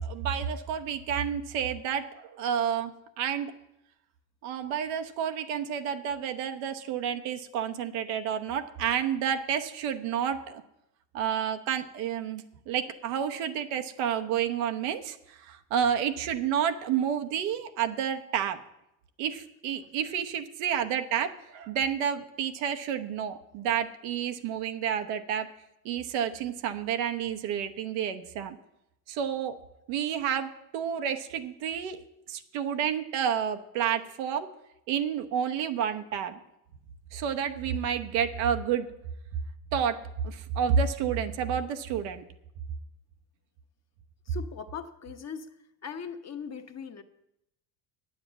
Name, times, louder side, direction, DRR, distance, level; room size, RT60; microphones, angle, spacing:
voice 1, 0.0-2.9 3.2-3.5 4.4-10.6 11.1-18.6 19.2-25.5 25.8-28.6 29.1-29.6 29.9-32.0 32.3-34.5 34.9-36.4 37.1-38.9 39.7-40.0 40.2-42.2, right 8 dB, 80° right, 6 dB, 1.0 m, -30 dB
voice 2, 44.3-45.5 45.8-47.0, left 6 dB, 35° left, 7 dB, 1.0 m, -39 dB
9.1 x 7.8 x 7.5 m, 0.83 s
supercardioid pair, 80°, 48 cm